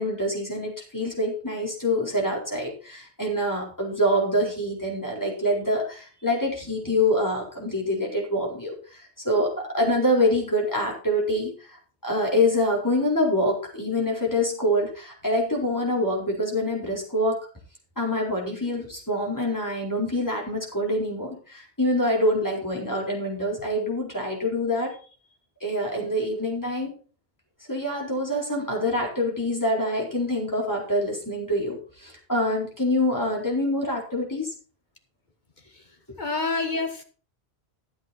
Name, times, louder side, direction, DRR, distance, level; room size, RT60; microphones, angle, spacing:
voice 1, 0.0-17.5 18.0-25.0 25.6-26.9 27.7-34.5 36.1-36.2, left 1 dB, 15° left, -3 dB, 4.4 m, -25 dB
voice 2, 35.7-37.0, left 3 dB, 45° left, 6 dB, 1.5 m, -29 dB
13.5 x 7.9 x 4.3 m, 0.38 s
omnidirectional pair, 1.1 m